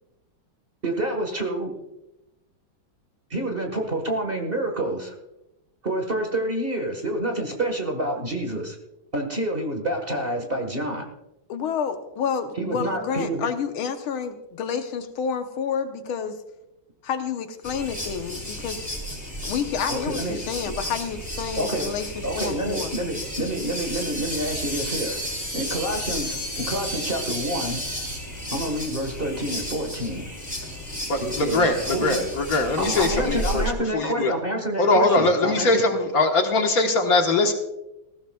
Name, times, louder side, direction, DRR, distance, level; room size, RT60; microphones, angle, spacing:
voice 1, 0.8-1.7 3.3-5.1 5.8-8.8 9.1-11.1 12.6-13.5 19.9-20.4 21.6-21.9 22.2-25.2 25.5-27.8 28.5-30.3 31.2-32.3 32.8-35.7, right 1 dB, 30° right, 3 dB, 1.5 m, -28 dB
voice 2, 11.5-16.4 17.0-18.9 19.4-23.0, left 7 dB, 80° left, 7 dB, 1.8 m, -29 dB
sound 1, 17.6-33.7, equal, 10° left, 3.1 m, -32 dB
voice 3, 31.1-33.6 33.9-34.3 34.8-37.5, left 2 dB, 50° left, 3 dB, 1.6 m, -21 dB
19.0 x 15.5 x 2.3 m, 0.92 s
omnidirectional pair, 2.3 m